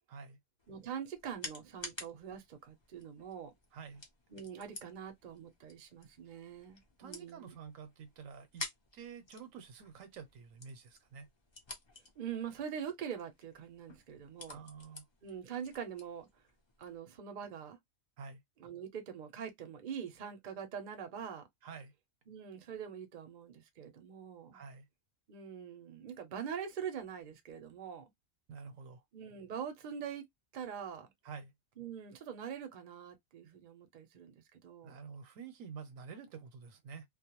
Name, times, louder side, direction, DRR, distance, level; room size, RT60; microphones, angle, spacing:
voice 1, 0.1-0.4 3.7-4.0 7.0-8.7 8.9-11.3 14.5-15.1 18.2-18.4 21.6-21.9 24.5-24.9 28.5-29.0 31.2-31.5 34.8-37.1, right 6 dB, 75° right, 1.0 m, -49 dB
sound 1, 0.6-17.0, left 2 dB, 35° left, 0.4 m, -52 dB
voice 2, 0.7-3.5 4.3-7.5 12.2-14.6 15.2-16.3 16.8-17.8 18.6-21.5 22.3-24.6 25.3-28.0 29.1-30.3 30.5-31.1 31.8-35.0, right 8 dB, 50° right, 0.6 m, -44 dB
2.3 x 2.1 x 2.9 m
omnidirectional pair, 1.4 m